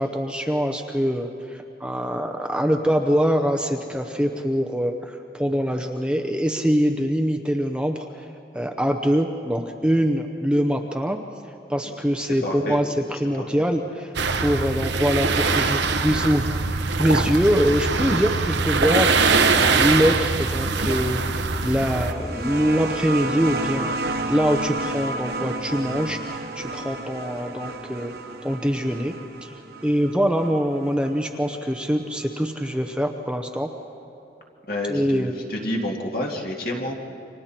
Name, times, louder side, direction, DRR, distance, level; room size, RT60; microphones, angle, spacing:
voice 1, 0.0-8.3 8.5-11.2 11.7-14.1 14.4-19.1 19.5-24.0 24.3-28.1 28.4-29.1 29.4-29.5 29.8-33.7 34.9-35.4, equal, 5° right, 4 dB, 0.7 m, -24 dB
voice 2, 12.2-12.8 13.4-13.5 34.7-36.9, left 1 dB, 55° left, 0 dB, 2.5 m, -29 dB
sound 1, 14.2-22.1, right 4 dB, 75° right, 1.1 m, -22 dB
sound 2, 22.0-31.2 32.4-32.5, right 2 dB, 60° right, 1.2 m, -31 dB
29.5 x 25.5 x 4.4 m, 2.7 s
head